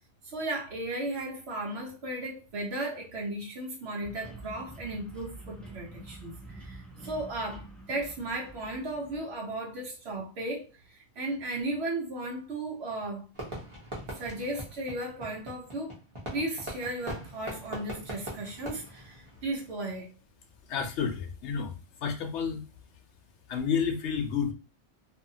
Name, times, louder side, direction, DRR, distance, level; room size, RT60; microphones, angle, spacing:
voice 1, 0.2-13.3 14.1-15.9 16.3-20.1, right 2 dB, 65° right, 1.1 m, -35 dB
sound 1, 4.0-9.3, right 2 dB, ahead, 0.4 m, -47 dB
Fireworks, 13.3-19.9, right 1 dB, 25° right, 0.9 m, -41 dB
voice 2, 20.7-22.6 23.5-24.5, left 6 dB, 75° left, 0.9 m, -30 dB
2.7 x 2.4 x 2.7 m
omnidirectional pair, 1.2 m